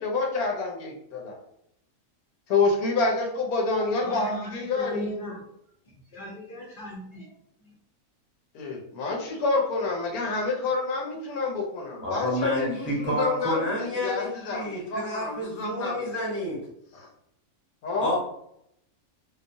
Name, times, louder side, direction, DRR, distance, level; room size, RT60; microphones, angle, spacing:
voice 1, 0.0-1.4 2.5-5.2 8.5-16.1 16.9-17.1 17.8-18.1, left 3 dB, 75° left, 1 dB, 1.1 m, -28 dB
voice 2, 3.8-5.5 6.1-7.7, left 1 dB, 50° left, -5 dB, 0.6 m, -39 dB
voice 3, 12.0-16.6 18.0-18.2, left 1 dB, 10° right, -6 dB, 0.7 m, -29 dB
2.9 x 2.1 x 2.6 m, 0.75 s
omnidirectional pair, 1.6 m